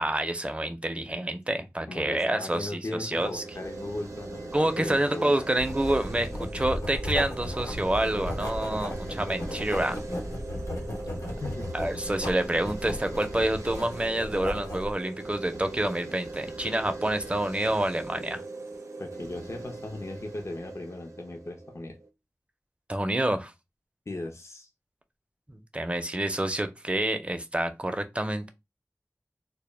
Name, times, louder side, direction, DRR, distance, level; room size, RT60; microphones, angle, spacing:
voice 1, 0.0-3.4 4.5-10.0 11.7-18.4 22.9-23.5 25.5-28.5, right 1 dB, 20° right, 0.4 m, -28 dB
voice 2, 1.9-5.3 11.2-11.7 19.0-22.0 24.1-24.7, left 2 dB, 60° left, 0.4 m, -37 dB
sound 1, 3.0-22.1, right 3 dB, 75° right, 0.5 m, -41 dB
Writing, 5.6-14.9, left 1 dB, 90° left, 0.9 m, -35 dB
2.1 x 2.1 x 3.1 m
wide cardioid pair, 50°, 5 cm